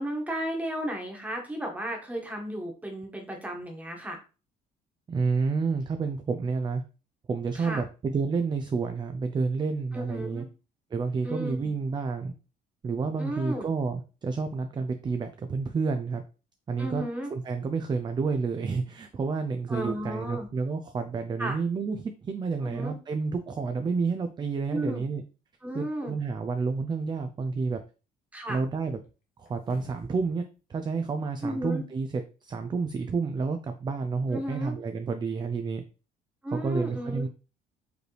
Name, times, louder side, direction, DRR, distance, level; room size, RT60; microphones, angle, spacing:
voice 1, 0.0-4.2 7.5-7.8 9.9-10.5 11.2-11.7 13.2-13.7 16.8-17.3 19.7-20.5 21.4-21.6 22.6-22.9 24.7-25.0 25.6-26.1 28.3-28.6 31.4-31.8 34.3-34.7 36.4-37.3, equal, 10° right, 1 dB, 1.4 m, -34 dB
voice 2, 5.1-6.8 7.3-10.4 10.9-12.3 12.8-16.2 16.7-17.0 17.3-25.2 25.7-27.8 28.5-29.0 29.4-35.8 36.5-37.3, right 4 dB, 25° right, 8 dB, 0.5 m, -30 dB
sound 1, 29.5-30.3 30.7-30.8, left 2 dB, 60° left, 1.1 m, -51 dB
4.9 x 3.1 x 3.2 m, 0.33 s
cardioid pair, 110°, 17 cm